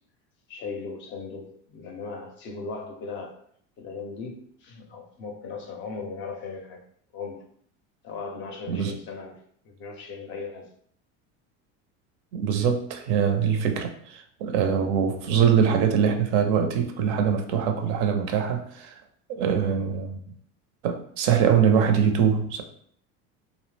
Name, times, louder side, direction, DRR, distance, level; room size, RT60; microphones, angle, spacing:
voice 1, 0.5-3.4 3.8-6.8 7.1-7.4 8.0-9.4 9.6-10.7, left 4 dB, 35° left, 3 dB, 0.4 m, -37 dB
voice 2, 8.7-9.0 12.3-19.0 19.3-20.2 20.8-22.6, right 7 dB, 65° right, 5 dB, 0.5 m, -23 dB
2.7 x 2.1 x 3.1 m, 0.63 s
cardioid pair, 145°, 35 cm